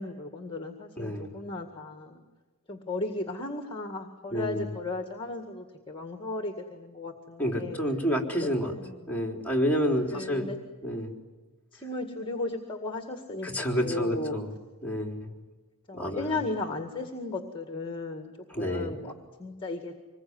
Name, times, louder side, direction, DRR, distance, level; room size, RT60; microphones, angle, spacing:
voice 1, 0.0-2.2 2.7-7.8 8.7-9.2 10.0-10.6 11.7-14.4 15.9-18.3 18.6-19.1 19.4-19.9, left 2 dB, 25° left, 5 dB, 1.9 m, -35 dB
voice 2, 1.0-1.4 4.3-4.7 7.4-8.7 9.1-10.5 10.8-11.2 13.4-14.5 14.8-15.3 15.9-16.4 18.5-19.0, equal, 10° left, 0 dB, 3.8 m, -29 dB
26.0 x 21.0 x 9.6 m, 1.2 s
head